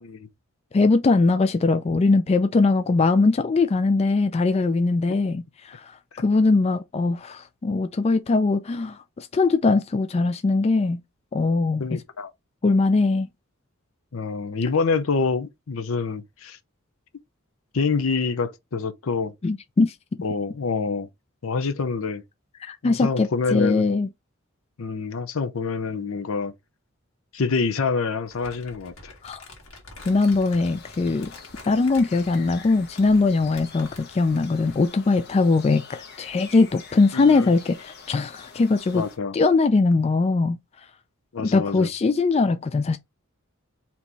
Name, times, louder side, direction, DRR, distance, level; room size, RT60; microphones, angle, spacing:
voice 1, 0.7-5.9 6.2-11.0 11.3-11.8 12.6-13.3 19.4-19.9 22.6-24.1 29.2-29.4 30.1-31.3 31.7-39.0 39.3-40.6 41.5-43.0, left 3 dB, 30° left, 0.3 m, -21 dB
voice 2, 11.8-12.3 14.1-16.6 17.7-19.3 20.2-21.1 21.4-22.2 22.8-23.8 24.8-26.5 27.3-29.1 37.1-37.5 38.9-39.3 41.3-41.9, left 4 dB, 70° left, 0.6 m, -26 dB
Crumpling crinkling, 28.3-34.9, left 2 dB, 85° left, 1.8 m, -46 dB
sound 1, 30.0-39.2, left 5 dB, 50° left, 1.1 m, -46 dB
4.2 x 3.0 x 3.3 m
head